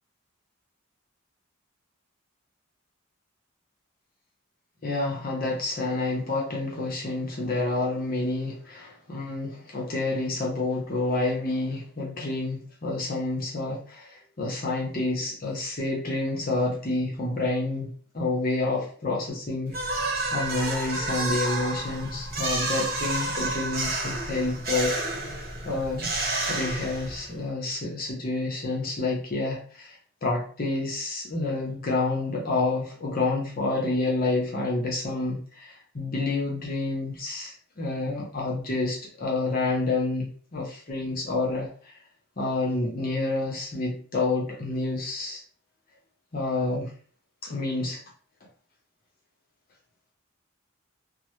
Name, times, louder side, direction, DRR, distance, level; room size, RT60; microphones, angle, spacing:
voice 1, 4.8-25.4 25.6-26.1 26.5-30.0 30.2-41.9 42.4-45.4 46.3-46.9 47.4-48.0, left 2 dB, 45° left, -2 dB, 0.8 m, -29 dB
sound 1, 19.7-27.4, right 2 dB, 45° right, 0.9 m, -30 dB
2.9 x 2.1 x 3.0 m, 0.43 s
head